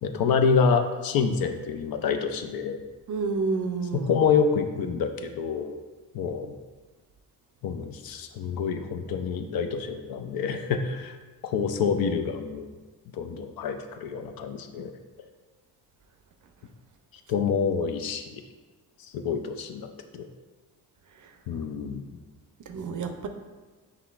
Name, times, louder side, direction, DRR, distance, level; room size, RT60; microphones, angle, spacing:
voice 1, 0.0-2.8 3.9-5.8 6.1-6.5 7.6-11.2 11.4-12.7 13.1-14.9 17.3-18.4 19.1-19.9 20.1-20.3 21.5-22.2, left 6 dB, 60° left, 6 dB, 0.5 m, -27 dB
voice 2, 3.1-4.1 22.7-23.3, right 4 dB, 50° right, 6 dB, 0.5 m, -29 dB
5.7 x 3.4 x 2.4 m, 1.3 s
cardioid pair, 75°, 40 cm